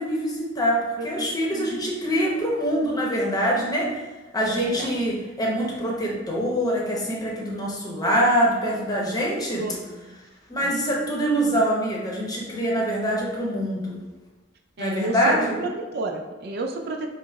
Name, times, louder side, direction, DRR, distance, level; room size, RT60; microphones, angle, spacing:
voice 1, 0.0-4.0 4.3-9.6 10.5-14.0 14.8-15.6, equal, 20° left, -3 dB, 0.8 m, -24 dB
voice 2, 1.0-1.9 4.6-4.9 9.6-10.2 10.6-10.7 14.8-17.1, right 2 dB, 55° right, 4 dB, 0.4 m, -31 dB
5.4 x 2.0 x 4.6 m, 1.2 s
head